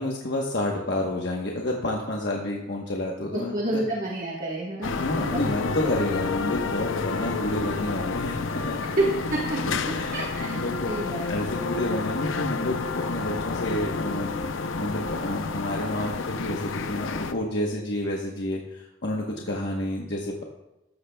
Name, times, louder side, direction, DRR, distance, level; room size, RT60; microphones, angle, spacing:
voice 1, 0.0-3.8 4.9-8.8 9.9-10.9 11.3-20.4, left 1 dB, 60° left, -1 dB, 1.1 m, -30 dB
voice 2, 3.3-5.4 5.8-5.9 7.1-7.3 9.0-11.3 19.4-19.6, right 2 dB, 40° right, -4 dB, 1.4 m, -30 dB
sound 1, 4.8-17.3, left 4 dB, 80° left, 0.7 m, -30 dB
13.0 x 13.0 x 2.3 m, 0.93 s
head